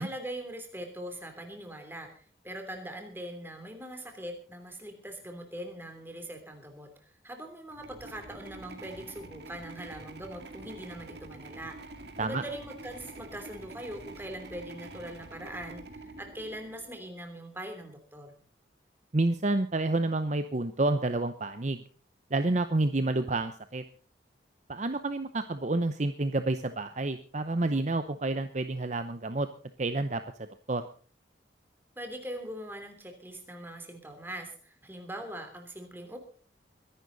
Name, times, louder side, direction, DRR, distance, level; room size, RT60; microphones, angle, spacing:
voice 1, 0.0-6.9 7.2-11.7 12.2-18.3 32.0-36.2, right 1 dB, 10° right, 4 dB, 3.1 m, -42 dB
sound 1, 7.7-17.1, right 2 dB, 65° right, 2.1 m, -47 dB
voice 2, 19.1-21.8 22.3-23.8 24.7-29.5 29.8-30.2 30.7-30.9, right 2 dB, 40° right, 10 dB, 0.8 m, -29 dB
23.0 x 11.0 x 4.0 m, 0.41 s
head